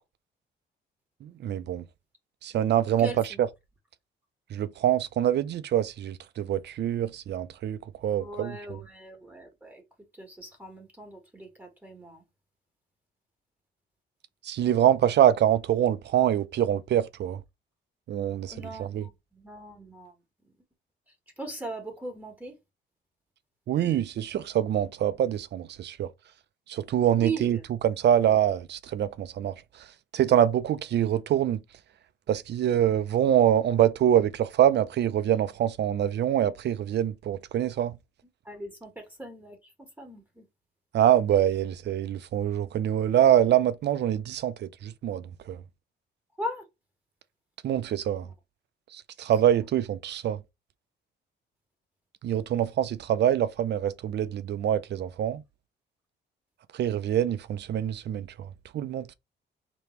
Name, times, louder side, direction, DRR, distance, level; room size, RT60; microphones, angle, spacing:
voice 1, 1.2-1.8 2.4-3.1 4.5-8.6 14.4-17.4 18.1-18.5 18.8-19.0 23.7-26.1 26.7-27.6 27.8-29.9 30.1-31.6 32.3-38.0 40.9-45.6 47.6-48.3 48.9-50.4 52.2-55.4 56.7-59.1, right 10 dB, 60° right, 0.5 m, -25 dB
voice 2, 3.0-3.4 8.2-9.8 10.1-12.2 18.5-20.1 20.4-20.5 21.1-22.6 27.2-27.6 38.4-40.5 46.4-46.6 48.2-48.3 49.2-49.3, right 2 dB, 10° right, 1.5 m, -39 dB
3.4 x 3.0 x 4.3 m
cardioid pair, 90°, 20 cm